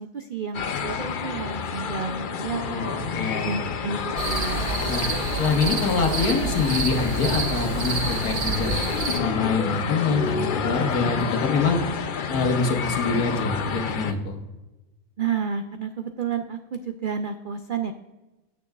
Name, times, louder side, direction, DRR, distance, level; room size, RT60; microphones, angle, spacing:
voice 1, 0.0-3.0 3.5-4.7 15.2-17.9, right 6 dB, 70° right, 7 dB, 0.4 m, -31 dB
sound 1, 0.5-14.1, left 6 dB, 65° left, 0.5 m, -29 dB
voice 2, 2.5-3.5 4.9-5.0 5.4-8.7 9.1-11.8 12.3-14.4, left 4 dB, 80° left, 3 dB, 1.8 m, -25 dB
sound 2, 4.2-9.2, right 5 dB, 55° right, 1.3 m, -28 dB
15.5 x 6.9 x 2.4 m, 1.1 s
omnidirectional pair, 1.6 m